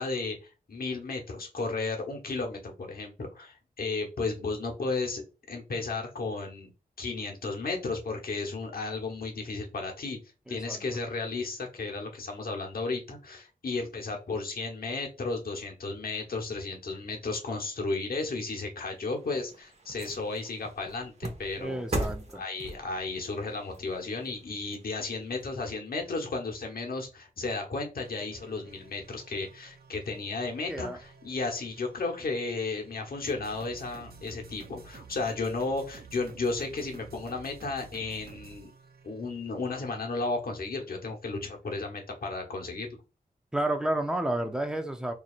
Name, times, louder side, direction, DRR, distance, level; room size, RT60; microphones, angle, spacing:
voice 1, 0.0-5.2 5.5-6.7 7.0-10.2 10.5-22.1 22.3-38.7 39.0-42.9, left 3 dB, 70° left, 2 dB, 1.1 m, -34 dB
voice 2, 10.5-10.8 21.6-22.4 30.7-31.0 43.5-45.1, right 1 dB, 5° right, 4 dB, 0.6 m, -31 dB
sound 1, 18.9-25.4 25.9-26.0, right 1 dB, 40° right, 1.0 m, -39 dB
sound 2, 28.0-40.0, right 5 dB, 80° right, 0.7 m, -52 dB
4.7 x 2.8 x 2.5 m, 0.31 s
wide cardioid pair, 90°, 16 cm